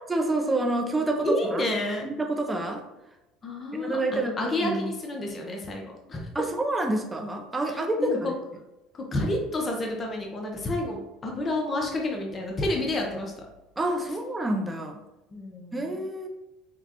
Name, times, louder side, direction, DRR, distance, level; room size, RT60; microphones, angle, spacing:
voice 1, 0.1-1.6 2.0-2.8 3.7-4.9 6.3-8.4 13.8-15.0 15.7-16.3, right 1 dB, 15° right, 4 dB, 0.6 m, -28 dB
voice 2, 1.2-2.0 3.4-5.8 6.1-6.5 7.7-8.3 8.9-13.3 15.3-16.0, left 1 dB, 25° left, 0 dB, 0.8 m, -30 dB
5.9 x 2.3 x 2.9 m, 0.95 s
supercardioid pair, 115°, 0 cm